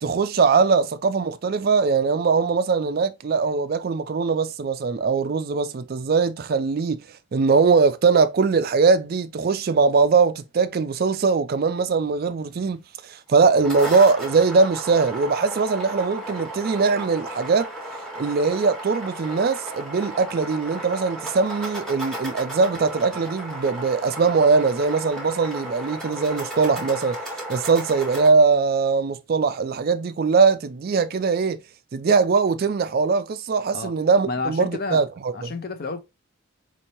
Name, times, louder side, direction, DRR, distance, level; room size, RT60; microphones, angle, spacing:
voice 1, 0.0-7.0 7.3-17.7 18.2-27.2 27.5-31.6 31.9-35.5, right 4 dB, 45° right, 0.3 m, -21 dB
sound 1, 13.4-28.3, right 1 dB, ahead, 0.9 m, -34 dB
voice 2, 34.3-35.0 35.3-36.0, left 3 dB, 45° left, 0.5 m, -30 dB
4.3 x 2.8 x 2.8 m
head